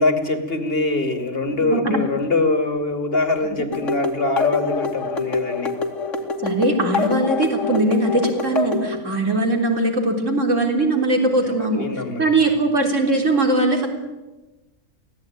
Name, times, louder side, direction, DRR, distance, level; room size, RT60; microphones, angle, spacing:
voice 1, 0.0-5.8 11.4-12.3, left 2 dB, 45° left, 7 dB, 2.7 m, -23 dB
voice 2, 1.5-2.0 6.4-11.9 12.2-13.9, right 2 dB, 65° right, 3 dB, 4.2 m, -20 dB
sound 1, 3.7-8.9, left 4 dB, 65° left, 2.8 m, -25 dB
23.5 x 17.5 x 9.4 m, 1.1 s
omnidirectional pair, 1.4 m